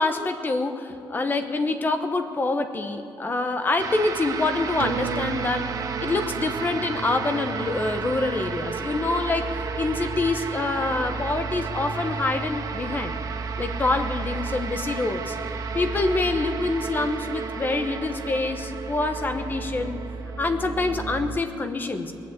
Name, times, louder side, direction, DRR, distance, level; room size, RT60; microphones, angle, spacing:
voice 1, 0.0-5.7 6.0-13.2 13.6-15.4 15.7-20.0 20.4-22.1, left 3 dB, 20° left, 7 dB, 0.9 m, -26 dB
sound 1, 3.8-21.4, right 5 dB, 40° right, 0.9 m, -32 dB
sound 2, 4.8-9.7 10.1-10.2, right 9 dB, 90° right, 0.5 m, -37 dB
20.5 x 8.6 x 8.1 m, 2.7 s
cardioid pair, 170°, 9 cm